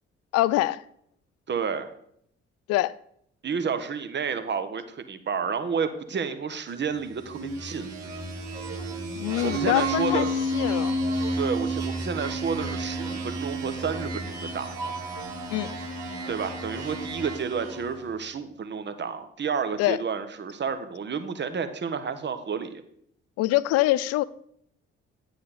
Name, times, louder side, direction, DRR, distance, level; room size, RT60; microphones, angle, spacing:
voice 1, 0.3-0.8 2.7-2.9 9.2-10.3 10.5-11.0 15.5-15.7 19.8-20.0 23.4-24.2, left 16 dB, 50° left, 0.4 m, -24 dB
voice 2, 1.5-1.9 3.4-7.9 9.4-10.3 11.4-14.9 16.3-22.8, right 6 dB, 35° right, 1.1 m, -30 dB
sound 1, 7.1-18.0, equal, 50° right, 2.2 m, -31 dB
9.6 x 7.8 x 4.2 m
figure-of-eight pair, 40°, 33 cm